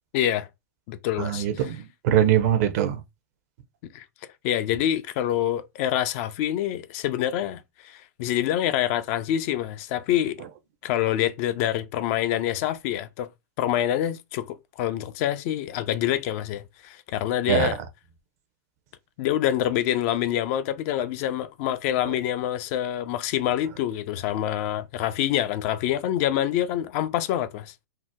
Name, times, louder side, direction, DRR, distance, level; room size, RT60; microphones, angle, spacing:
voice 1, 0.1-0.5 0.9-1.8 3.9-4.1 4.4-10.4 10.8-13.3 13.6-17.8 19.2-27.7, left 11 dB, 50° left, 0.5 m, -26 dB
voice 2, 1.2-3.0 17.5-17.7, right 10 dB, 55° right, 0.6 m, -22 dB
2.7 x 2.1 x 3.5 m
hypercardioid pair, 110°, 10 cm